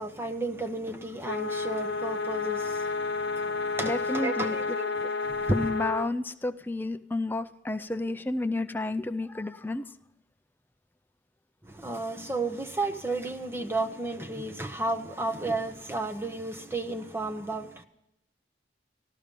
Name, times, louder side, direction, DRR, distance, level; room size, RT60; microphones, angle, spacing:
voice 1, 0.0-5.7 11.6-17.8, right 2 dB, 15° right, 0.8 m, -33 dB
sound 1, 1.2-6.1, left 4 dB, 70° left, 0.8 m, -31 dB
voice 2, 3.8-4.8 5.5-9.8, left 2 dB, 10° left, 0.4 m, -31 dB
13.0 x 13.0 x 5.2 m
head